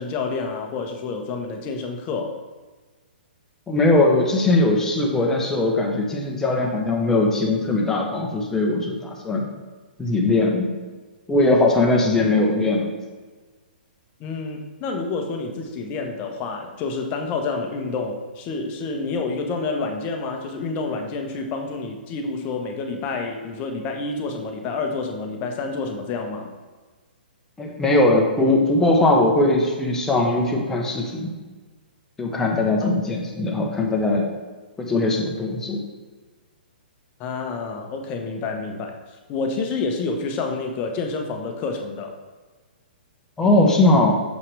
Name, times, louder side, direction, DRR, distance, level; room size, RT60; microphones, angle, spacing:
voice 1, 0.0-2.3 14.2-26.5 32.8-32.9 37.2-38.9 39.3-42.1, left 4 dB, 30° left, 3 dB, 1.0 m, -28 dB
voice 2, 3.7-9.5 10.0-10.7 11.3-12.9 27.6-31.3 32.2-34.3 34.8-35.8 43.4-44.2, left 2 dB, 10° left, -1 dB, 1.1 m, -20 dB
6.6 x 5.7 x 3.3 m, 1.3 s
hypercardioid pair, 125°, 6 cm